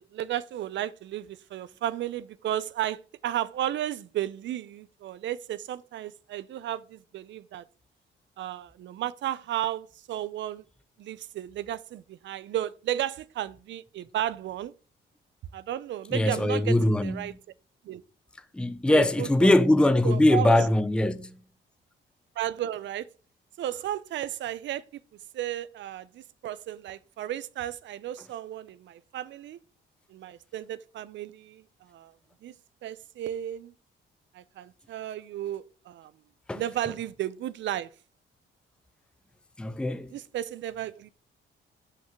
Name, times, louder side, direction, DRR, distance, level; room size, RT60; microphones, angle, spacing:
voice 1, 0.0-7.6 8.4-10.6 11.0-14.7 15.5-17.3 17.8-18.0 18.9-19.5 20.0-20.5 22.4-23.1 23.6-25.0 25.3-29.6 30.1-31.6 31.9-32.1 32.4-32.5 32.8-33.7 34.3-36.1 36.5-37.9 40.1-41.1, right 12 dB, 65° right, 0.5 m, -34 dB
voice 2, 16.1-17.4 18.5-21.3 36.5-36.6 39.6-40.1, left 1 dB, 5° left, 0.5 m, -22 dB
6.0 x 5.6 x 5.9 m
cardioid pair, 90°, 20 cm